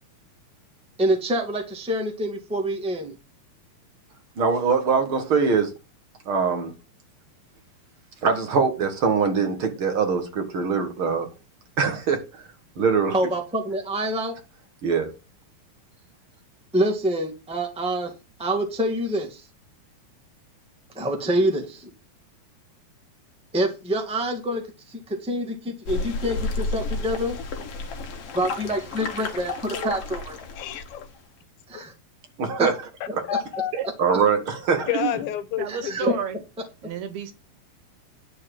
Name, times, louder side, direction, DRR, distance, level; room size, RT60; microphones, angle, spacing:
voice 1, 1.0-3.1 13.1-14.3 16.7-18.1 18.4-19.5 20.9-21.9 23.5-24.6 24.9-27.4 28.3-30.4 31.7-31.9 32.6-32.7 35.7-36.1, right 1 dB, 5° right, 0.9 m, -26 dB
voice 2, 4.4-5.7 6.2-6.7 8.2-11.3 11.8-12.5 12.7-13.2 14.8-15.1 32.4-32.8 33.1-33.2 34.0-34.9, right 5 dB, 50° right, 1.7 m, -23 dB
sound 1, 25.9-31.2, left 3 dB, 50° left, 2.3 m, -32 dB
voice 3, 30.6-31.1 31.7-31.8 33.3-33.7 34.9-36.2, left 11 dB, 75° left, 2.9 m, -29 dB
voice 4, 34.9-35.3 35.6-36.4 36.8-37.3, right 9 dB, 85° right, 3.4 m, -30 dB
11.5 x 4.6 x 7.6 m
omnidirectional pair, 4.4 m